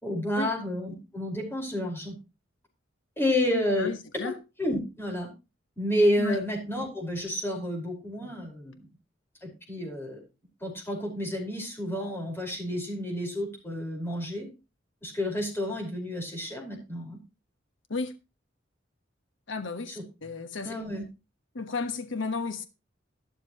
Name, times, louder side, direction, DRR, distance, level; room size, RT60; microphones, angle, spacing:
voice 1, 0.0-2.1 3.2-4.3 4.6-5.3 5.8-8.8 9.4-10.2 10.6-14.5 15.0-17.2 19.9-20.0 20.6-21.0, left 1 dB, 10° left, 5.0 m, -30 dB
voice 2, 3.8-4.3 6.2-6.4 17.9-18.1 19.5-20.7 21.5-22.6, left 4 dB, 75° left, 1.3 m, -33 dB
13.0 x 12.5 x 3.1 m
head